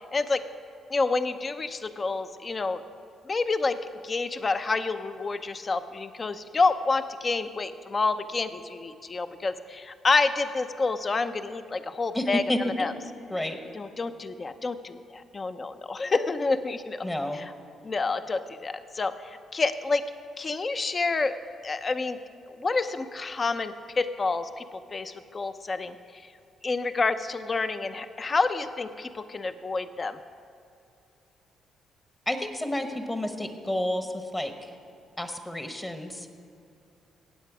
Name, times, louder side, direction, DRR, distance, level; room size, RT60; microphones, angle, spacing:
voice 1, 0.1-0.4 0.9-2.8 3.3-12.4 12.8-12.9 13.7-17.1 17.3-17.4 17.8-20.0 20.4-21.4 21.6-22.2 22.5-26.2 26.6-30.2, left 3 dB, 35° left, 11 dB, 0.6 m, -28 dB
voice 2, 12.1-12.9 13.3-13.6 17.0-17.4 32.3-34.7 35.2-36.3, left 1 dB, 15° left, 6 dB, 1.0 m, -30 dB
17.0 x 8.2 x 4.8 m, 2.5 s
cardioid pair, 90°, 0 cm